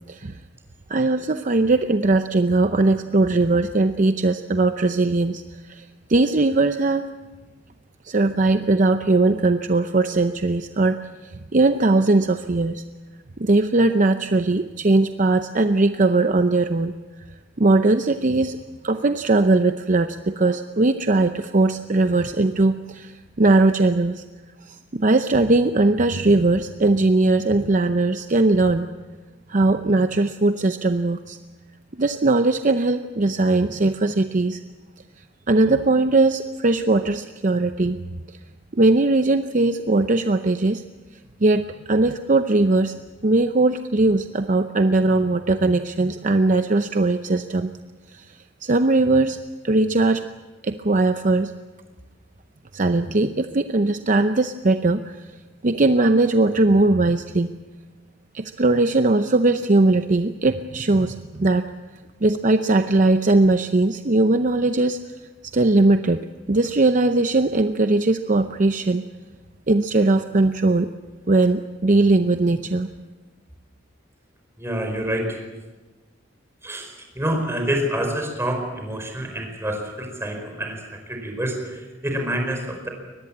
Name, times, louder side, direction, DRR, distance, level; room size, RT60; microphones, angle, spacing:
voice 1, 0.9-5.4 5.7-5.8 6.1-7.1 8.0-11.0 11.2-12.8 13.4-16.9 17.6-18.6 18.8-24.2 24.6-28.9 29.5-31.4 32.0-34.6 35.5-38.0 38.7-40.8 41.4-43.0 43.2-47.7 48.1-49.4 49.6-50.2 50.6-51.5 52.7-55.2 55.6-57.5 58.3-61.7 62.2-65.0 65.5-69.0 69.7-70.9 71.3-72.9, right 2 dB, 40° right, 8 dB, 0.7 m, -19 dB
voice 2, 74.6-75.4 76.6-82.9, right 1 dB, 15° right, 3 dB, 4.8 m, -27 dB
23.0 x 19.5 x 8.7 m, 1.3 s
head